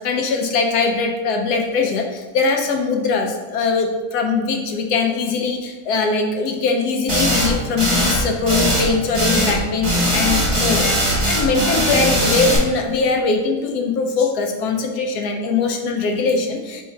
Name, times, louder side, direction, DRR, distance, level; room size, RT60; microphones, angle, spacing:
voice 1, 0.0-16.8, left 4 dB, 80° left, 3 dB, 1.1 m, -21 dB
sound 1, 7.1-7.5 7.8-8.2 8.5-8.9 9.1-9.6 9.8-12.6, equal, 20° right, 1.0 m, -19 dB
3.6 x 3.2 x 4.4 m, 1.3 s
omnidirectional pair, 1.7 m